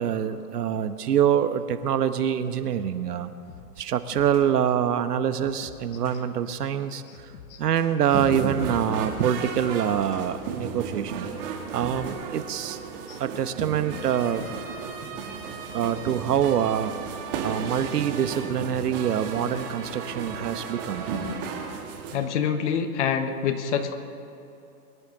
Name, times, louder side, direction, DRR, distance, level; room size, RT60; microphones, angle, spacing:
voice 1, 0.0-3.3 3.8-7.3 7.6-11.3 11.7-12.8 13.2-14.4 15.7-16.9 17.4-21.0, right 9 dB, 75° right, 11 dB, 1.1 m, -25 dB
sound 1, 3.5-3.8 4.1-4.6 5.4-6.3 7.1-8.5 8.8-10.3, left 6 dB, 65° left, 1.7 m, -47 dB
sound 2, 8.1-22.2, right 5 dB, 35° right, 1.7 m, -34 dB
voice 2, 22.1-24.0, left 7 dB, 50° left, 8 dB, 1.4 m, -26 dB
23.5 x 11.0 x 4.0 m, 2.8 s
hypercardioid pair, 150°, 47 cm